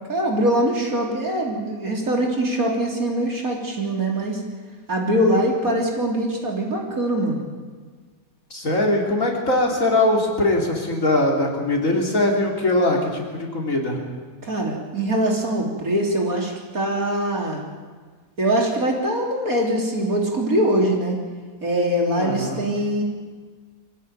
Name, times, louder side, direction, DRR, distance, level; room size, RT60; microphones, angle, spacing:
voice 1, 0.1-4.4 4.9-7.5 14.4-17.6 18.4-21.2 21.6-23.0, right 1 dB, 60° right, 0 dB, 4.0 m, -22 dB
voice 2, 8.5-14.0 22.2-22.6, left 1 dB, 50° left, 0 dB, 4.0 m, -21 dB
24.0 x 15.5 x 9.2 m, 1.5 s
omnidirectional pair, 1.7 m